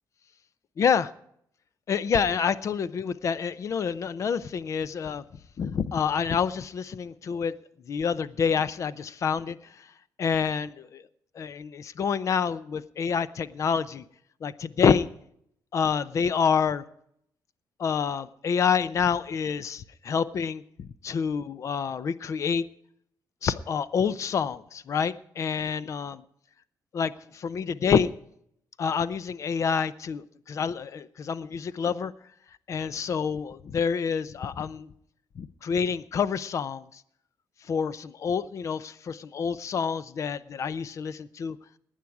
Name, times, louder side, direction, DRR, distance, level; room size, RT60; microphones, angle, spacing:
voice 1, 0.8-1.1 1.9-5.2 5.6-7.5 7.9-9.9 10.2-11.0 11.3-14.0 14.4-15.1 15.7-16.8 17.8-22.6 23.4-26.2 26.9-28.1 28.8-32.1 32.7-34.9 35.4-37.0 37.6-41.6, left 6 dB, 40° left, 16 dB, 0.6 m, -27 dB
18.5 x 9.2 x 4.8 m, 0.70 s
cardioid pair, 165°, 8 cm